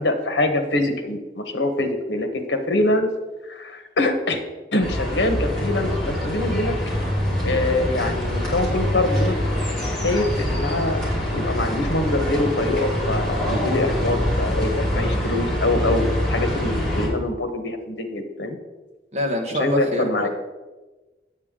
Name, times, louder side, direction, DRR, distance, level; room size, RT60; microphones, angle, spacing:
voice 1, 0.0-3.1 3.4-4.4 4.7-6.8 7.4-9.4 9.9-11.0 11.3-18.6 19.5-20.3, left 2 dB, 85° left, 6 dB, 1.1 m, -24 dB
sound 1, 4.8-17.1, left 1 dB, 5° left, 2.7 m, -24 dB
voice 2, 19.1-20.3, left 1 dB, 40° right, 1 dB, 1.3 m, -25 dB
8.6 x 7.9 x 3.7 m, 1.2 s
head